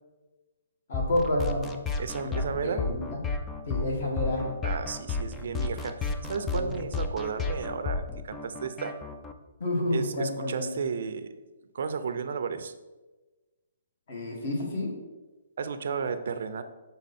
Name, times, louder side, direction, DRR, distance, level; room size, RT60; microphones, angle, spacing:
voice 1, 0.9-1.7 2.2-3.2 3.7-4.5 6.5-6.7 9.6-10.7 14.1-14.9, left 1 dB, 50° left, 0 dB, 1.7 m, -29 dB
sound 1, 0.9-9.3, left 4 dB, 10° left, 0.3 m, -33 dB
voice 2, 2.0-2.9 4.6-9.0 9.9-11.3 11.7-12.7 15.6-16.6, right 6 dB, 60° right, 10 dB, 0.5 m, -33 dB
6.3 x 3.9 x 4.2 m, 1.2 s
hypercardioid pair, 165°, 0 cm